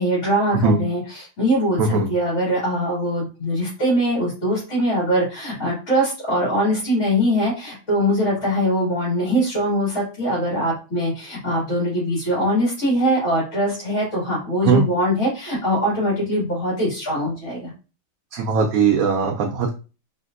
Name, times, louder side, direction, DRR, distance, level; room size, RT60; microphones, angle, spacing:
voice 1, 0.0-17.7, equal, 60° left, -7 dB, 2.5 m, -22 dB
voice 2, 18.3-19.7, right 5 dB, 80° right, 1 dB, 1.0 m, -19 dB
5.1 x 2.9 x 2.5 m, 0.33 s
omnidirectional pair, 1.5 m